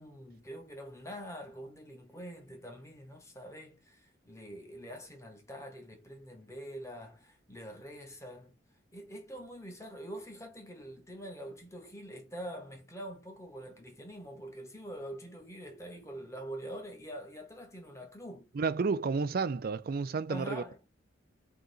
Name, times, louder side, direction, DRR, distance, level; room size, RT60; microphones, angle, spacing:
voice 1, 0.0-8.6 8.9-18.5 20.3-20.8, equal, 15° left, 1.0 m, -45 dB
voice 2, 18.5-20.6, right 4 dB, 50° right, 0.4 m, -31 dB
3.8 x 2.9 x 3.8 m
head